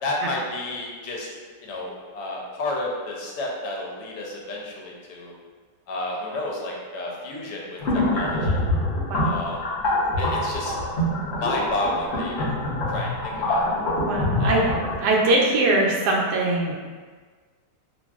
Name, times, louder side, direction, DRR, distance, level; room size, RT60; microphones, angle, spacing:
voice 1, 0.0-1.3 1.6-5.3 5.9-8.6 9.2-9.6 10.2-10.7 11.4-12.5 12.9-13.7 14.4-14.7, left 2 dB, 80° left, -2 dB, 1.2 m, -31 dB
sound 1, 7.8-15.0, left 1 dB, 55° left, 0.8 m, -25 dB
voice 2, 14.0-14.6 15.0-16.7, right 2 dB, 80° right, -1 dB, 1.1 m, -21 dB
2.9 x 2.6 x 2.2 m, 1.5 s
omnidirectional pair, 1.8 m